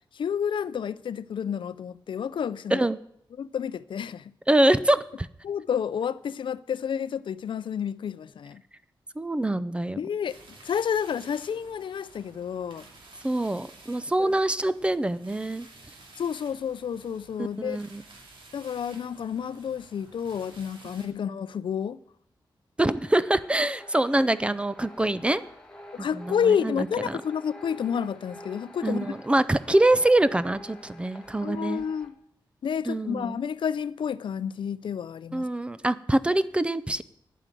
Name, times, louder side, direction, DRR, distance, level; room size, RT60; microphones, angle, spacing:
voice 1, 0.1-2.9 3.4-4.3 5.4-8.6 10.0-10.4 10.6-12.9 14.2-14.4 16.2-17.8 18.5-22.0 25.9-29.1 31.4-32.1 32.6-35.5, left 7 dB, 75° left, 0.5 m, -30 dB
voice 2, 2.7-3.0 4.5-5.3 9.2-10.0 13.2-15.7 17.6-18.0 22.8-25.4 26.0-27.2 28.8-31.8 32.9-33.4 35.3-37.0, right 1 dB, 15° right, 0.4 m, -24 dB
sound 1, 10.3-21.1, right 2 dB, 80° right, 2.3 m, -52 dB
sound 2, 22.8-32.1, equal, 10° left, 1.7 m, -47 dB
10.0 x 9.0 x 7.6 m
wide cardioid pair, 160°, 8 cm